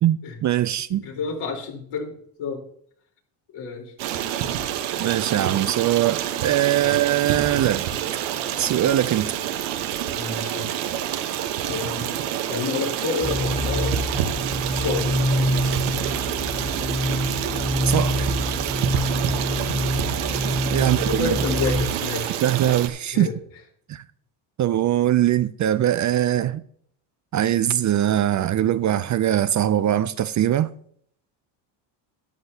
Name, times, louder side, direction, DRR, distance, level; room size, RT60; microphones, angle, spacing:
voice 1, 0.0-1.0 5.0-7.9 8.6-9.3 17.9-18.3 20.7-21.4 22.4-23.3 23.9-24.0 24.6-26.6 27.3-30.7, right 12 dB, 40° right, 0.4 m, -21 dB
voice 2, 1.0-2.1 2.4-2.6 3.5-3.9 6.8-6.9 10.1-10.7 11.6-12.1 12.5-13.9 14.6-15.1 20.8-22.3 23.1-23.3, left 5 dB, 75° left, 4.2 m, -29 dB
Stream, 4.0-22.9, right 10 dB, 85° right, 1.2 m, -28 dB
sound 1, 13.2-21.9, equal, 10° left, 1.9 m, -26 dB
13.0 x 10.5 x 2.8 m
cardioid pair, 100°, 49 cm